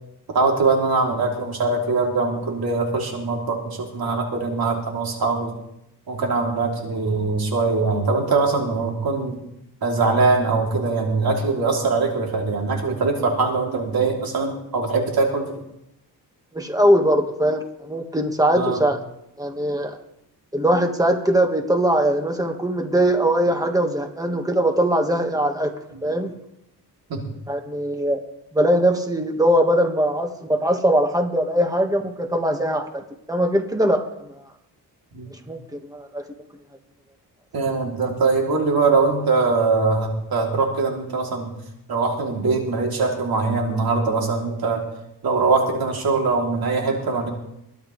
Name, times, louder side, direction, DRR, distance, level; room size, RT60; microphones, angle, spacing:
voice 1, 0.3-5.5 6.1-9.4 9.8-15.5 18.5-18.8 25.9-26.0 27.1-27.3 35.1-35.3 37.5-41.5 41.9-44.8 45.2-47.3, right 3 dB, 60° right, 0 dB, 2.9 m, -22 dB
voice 2, 16.5-19.0 19.4-20.0 20.5-25.7 26.0-26.3 27.5-28.2 28.5-32.8 33.3-34.3 35.5-36.2, right 1 dB, 10° right, 4 dB, 1.4 m, -21 dB
22.0 x 11.5 x 3.2 m, 0.81 s
wide cardioid pair, 135°, 41 cm